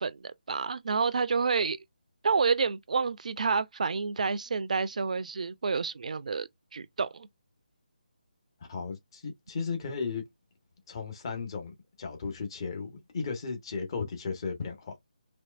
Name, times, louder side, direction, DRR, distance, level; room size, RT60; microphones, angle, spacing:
voice 1, 0.0-1.8 2.2-7.3, right 5 dB, 55° right, 0.5 m, -29 dB
voice 2, 8.7-10.2 10.9-14.9, left 5 dB, 35° left, 1.4 m, -35 dB
4.3 x 3.2 x 2.5 m
figure-of-eight pair, 155°, 5 cm